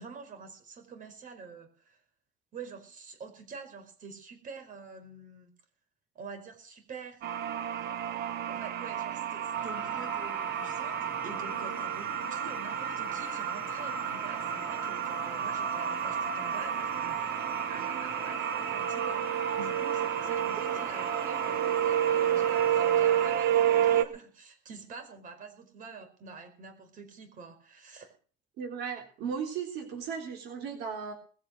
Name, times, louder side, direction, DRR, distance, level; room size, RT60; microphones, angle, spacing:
voice 1, 0.0-2.0 2.5-5.5 6.1-7.6 8.5-19.3 19.6-28.1, right 5 dB, 50° right, 7 dB, 4.9 m, -47 dB
sound 1, 7.2-24.0, right 10 dB, 70° right, 1.5 m, -30 dB
sound 2, 9.5-23.3, equal, 10° right, 2.6 m, -41 dB
voice 2, 28.6-31.1, right 6 dB, 85° right, 3 dB, 3.7 m, -36 dB
20.0 x 9.0 x 6.6 m, 0.42 s
cardioid pair, 110°, 17 cm